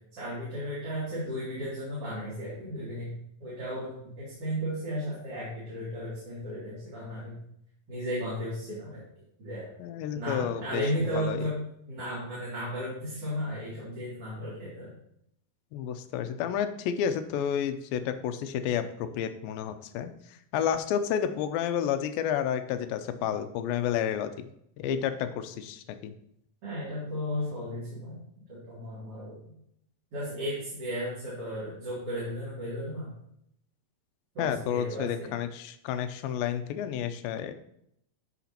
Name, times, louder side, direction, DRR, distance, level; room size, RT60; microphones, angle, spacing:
voice 1, 0.1-3.1 3.4-7.3 7.9-9.0 9.4-9.7 10.1-11.6 11.9-14.9 26.6-28.2 28.5-29.4 30.1-33.1 34.3-35.4, equal, 45° right, -9 dB, 3.3 m, -34 dB
voice 2, 9.8-10.8 11.2-11.4 15.7-20.1 20.5-24.3 24.8-26.1 34.4-37.5, left 9 dB, 85° left, 9 dB, 2.4 m, -30 dB
13.0 x 5.1 x 2.9 m, 0.73 s
omnidirectional pair, 4.1 m